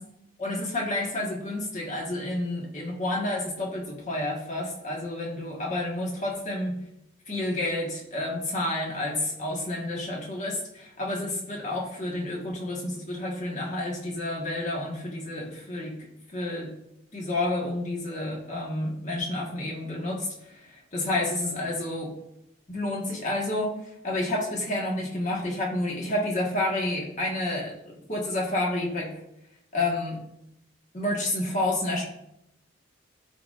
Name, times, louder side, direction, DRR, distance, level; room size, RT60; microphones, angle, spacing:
voice 1, 0.4-6.7 7.3-15.9 16.3-16.7 17.1-22.1 22.7-29.1 29.7-30.2 30.9-32.1, left 1 dB, 40° left, -2 dB, 1.5 m, -30 dB
12.0 x 4.0 x 2.5 m, 0.81 s
head